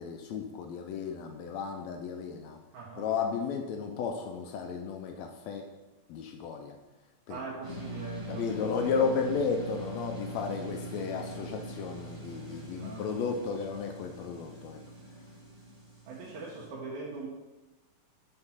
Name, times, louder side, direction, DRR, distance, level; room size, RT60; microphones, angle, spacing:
voice 1, 0.0-2.6 3.0-5.6 6.1-6.8 7.3-7.4 8.3-14.8, left 5 dB, 80° left, 4 dB, 1.6 m, -33 dB
voice 2, 2.7-3.0 7.3-8.6 12.8-13.0 16.1-17.3, right 3 dB, 70° right, -5 dB, 2.3 m, -41 dB
sound 1, 7.6-16.7, right 1 dB, 15° right, 1.1 m, -42 dB
6.7 x 4.4 x 5.6 m, 1.1 s
omnidirectional pair, 3.7 m